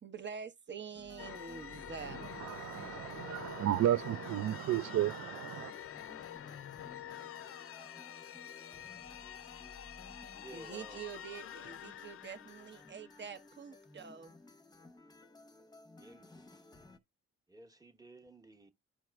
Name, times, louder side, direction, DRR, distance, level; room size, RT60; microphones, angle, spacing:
voice 1, 0.0-2.3 10.2-14.3, right 6 dB, 35° right, 0.9 m, -46 dB
sound 1, 0.9-17.0, left 2 dB, 15° left, 0.9 m, -57 dB
sound 2, 1.2-13.7, left 10 dB, 50° left, 0.5 m, -48 dB
voice 2, 2.4-5.7, right 12 dB, 65° right, 0.5 m, -33 dB
voice 3, 10.4-11.0 16.0-16.6 17.5-18.7, right 1 dB, 10° right, 1.1 m, -54 dB
12.0 x 4.6 x 2.3 m
cardioid pair, 90°, 30 cm